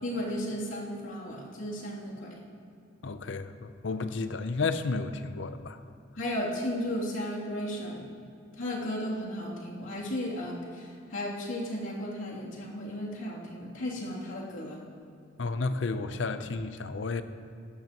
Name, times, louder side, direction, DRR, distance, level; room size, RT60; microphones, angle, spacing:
voice 1, 0.0-2.3 6.2-8.1 8.6-14.8, left 1 dB, 85° left, -5 dB, 2.8 m, -34 dB
voice 2, 3.0-5.8 15.4-17.2, left 3 dB, 70° left, 11 dB, 0.6 m, -32 dB
17.5 x 12.0 x 3.0 m, 2.5 s
head